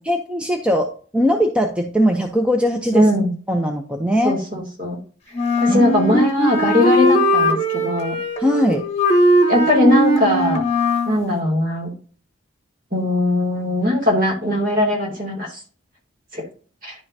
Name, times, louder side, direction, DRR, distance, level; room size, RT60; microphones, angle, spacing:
voice 1, 0.0-3.1 3.5-4.4 5.7-5.9 8.4-8.9, equal, 5° right, 3 dB, 0.6 m, -20 dB
voice 2, 2.9-3.3 4.2-5.0 5.6-8.2 9.5-10.6 11.1-11.9 12.9-15.5 16.3-16.4 16.8-16.9, left 1 dB, 45° right, 0 dB, 2.5 m, -19 dB
Wind instrument woodwind instrument, 5.3-11.2, equal, 35° left, 1.2 m, -19 dB
10.5 x 5.5 x 2.7 m, 0.41 s
head